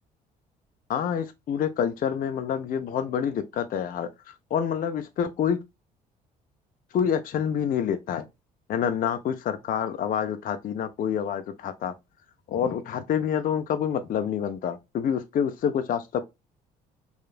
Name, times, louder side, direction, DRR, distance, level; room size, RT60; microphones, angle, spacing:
voice 1, 0.9-5.6 6.9-8.3 8.7-11.9 12.5-16.2, left 8 dB, 45° left, 0.4 m, -27 dB
3.1 x 2.3 x 2.3 m
hypercardioid pair, 55°, 20 cm